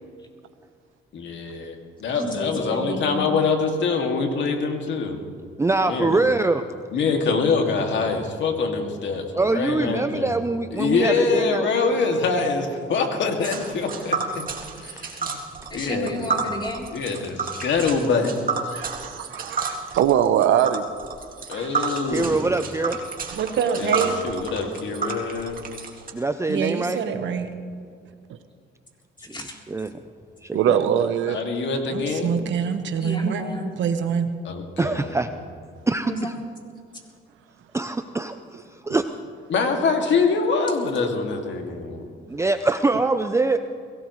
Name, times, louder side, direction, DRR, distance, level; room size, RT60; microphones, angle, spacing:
voice 1, 1.1-5.2 5.8-6.1 6.9-10.4 10.7-14.5 14.8-15.4 15.7-16.3 16.9-18.3 18.6-18.9 21.5-22.4 23.8-25.6 31.3-32.4 34.4-35.1 39.5-42.1, left 4 dB, 70° left, 3 dB, 2.4 m, -24 dB
voice 2, 2.1-3.3 10.8-11.1 11.8-11.9 15.7-16.9 29.3-29.6 33.0-33.8 36.0-36.3, equal, 25° left, -1 dB, 3.7 m, -32 dB
voice 3, 5.6-6.6 9.4-12.0 22.1-23.0 26.1-27.0 29.7-29.9 30.4-31.1 34.8-35.3 35.9-36.3 37.7-39.1 42.3-43.6, right 3 dB, 15° right, 9 dB, 0.6 m, -24 dB
Tick, 13.4-26.1, right 5 dB, 45° right, 2.3 m, -30 dB
voice 4, 18.7-20.8 21.5-21.9 23.3-23.4 30.5-31.4, right 10 dB, 80° right, 11 dB, 0.9 m, -22 dB
voice 5, 23.3-24.2 26.5-27.5 31.9-33.4 33.8-34.3, right 7 dB, 65° right, 7 dB, 1.3 m, -25 dB
22.5 x 17.5 x 3.2 m, 2.2 s
cardioid pair, 90°, 20 cm